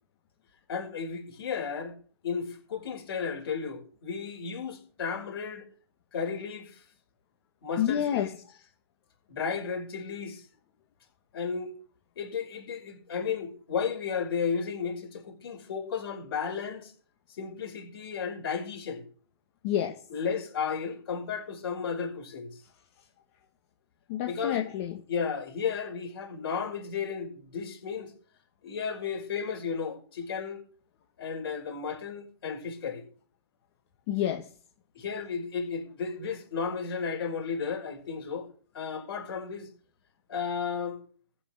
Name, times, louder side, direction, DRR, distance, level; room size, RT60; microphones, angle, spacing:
voice 1, 0.7-1.9 2.2-5.7 6.1-6.8 7.6-8.4 9.3-10.4 11.3-11.7 12.2-16.9 17.4-19.0 20.1-22.6 24.3-24.6 25.1-28.1 28.6-30.6 31.2-33.0 34.9-38.5 38.7-39.7 40.3-41.0, left 6 dB, 55° left, 5.8 m, -33 dB
voice 2, 7.8-8.3 19.6-20.0 24.1-25.0 34.1-34.5, left 10 dB, 35° left, 1.5 m, -28 dB
15.0 x 5.9 x 6.5 m
hypercardioid pair, 145°, 14 cm